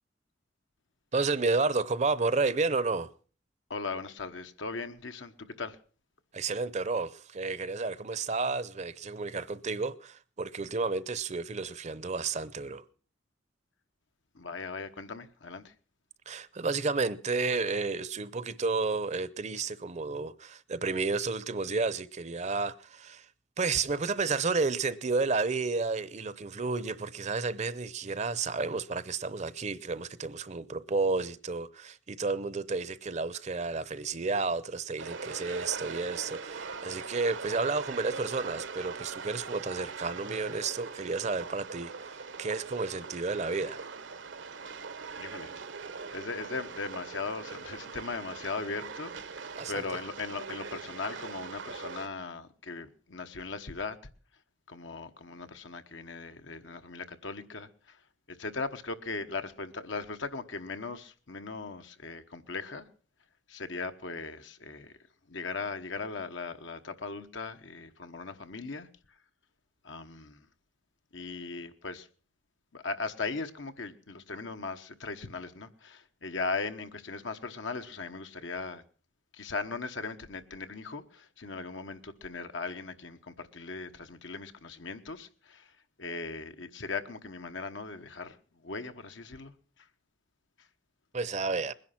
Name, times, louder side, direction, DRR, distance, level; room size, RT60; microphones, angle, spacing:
voice 1, 1.1-3.1 6.3-12.8 16.3-23.3 23.6-43.8 49.6-49.8 91.1-91.7, right 4 dB, 35° right, 0.7 m, -31 dB
voice 2, 3.7-5.8 14.3-15.7 45.2-45.5 46.1-54.0 54.7-58.0 58.3-62.9 63.5-64.9 65.3-68.9 69.8-70.4 71.1-72.1 72.7-78.8 79.3-85.7 86.0-88.4 88.6-89.5, left 4 dB, 80° left, 1.2 m, -38 dB
sound 1, 35.0-52.1, right 5 dB, 75° right, 1.0 m, -41 dB
21.0 x 10.5 x 5.9 m
head